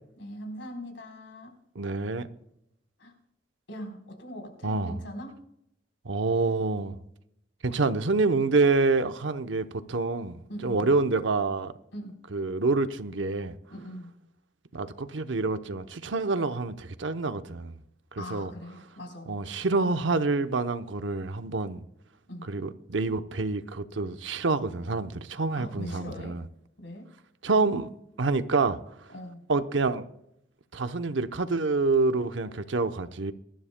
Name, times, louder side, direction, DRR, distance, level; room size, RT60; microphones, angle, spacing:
voice 1, 0.2-1.5 3.0-3.1 3.7-5.4 10.5-10.9 11.9-12.2 13.7-14.1 18.2-19.4 22.3-22.5 25.6-26.4 26.8-27.1 29.1-29.4, equal, 85° left, 3.9 m, -41 dB
voice 2, 1.7-2.3 4.6-5.0 6.0-7.0 7.6-11.7 12.3-13.6 14.7-17.8 18.1-18.5 19.3-21.8 22.5-26.4 27.4-28.8 29.5-30.1 30.7-33.3, right 3 dB, 90° right, 0.8 m, -27 dB
23.0 x 12.5 x 2.2 m
head